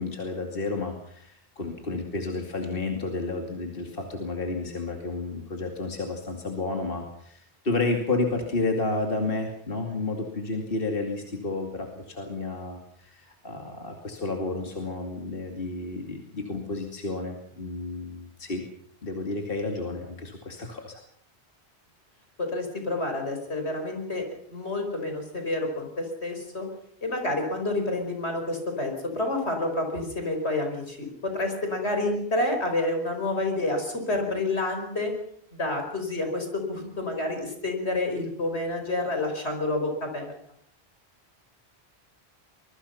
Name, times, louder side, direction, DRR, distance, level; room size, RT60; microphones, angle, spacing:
voice 1, 0.0-18.6 19.0-21.0, left 2 dB, 60° left, 3 dB, 2.7 m, -31 dB
voice 2, 22.4-26.7 27.0-35.1 35.5-40.3, left 2 dB, 85° left, 4 dB, 5.4 m, -29 dB
24.0 x 23.0 x 5.7 m, 0.65 s
omnidirectional pair, 1.1 m